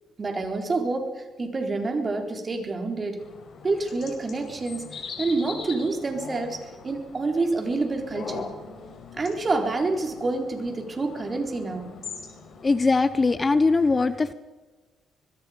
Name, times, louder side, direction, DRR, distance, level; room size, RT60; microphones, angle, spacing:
voice 1, 0.2-3.2 3.6-4.9 5.2-8.5 9.2-11.9, right 3 dB, 30° right, 4 dB, 4.0 m, -28 dB
sound 1, 3.2-12.8, left 5 dB, 60° left, 4.8 m, -41 dB
voice 2, 12.6-14.3, left 3 dB, 30° left, 14 dB, 0.9 m, -21 dB
25.0 x 20.5 x 5.2 m, 1.2 s
cardioid pair, 90°, 0 cm